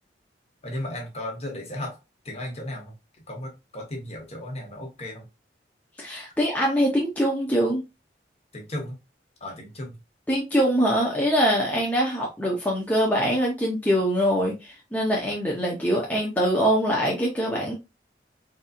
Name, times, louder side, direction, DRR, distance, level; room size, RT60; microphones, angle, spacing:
voice 1, 0.6-2.0 2.2-2.9 3.3-5.3 8.5-9.0 9.4-10.0, left 1 dB, 35° left, 1.2 m, -35 dB
voice 2, 6.0-7.8 10.3-17.7, equal, 10° left, 0.7 m, -23 dB
4.1 x 2.7 x 2.4 m
head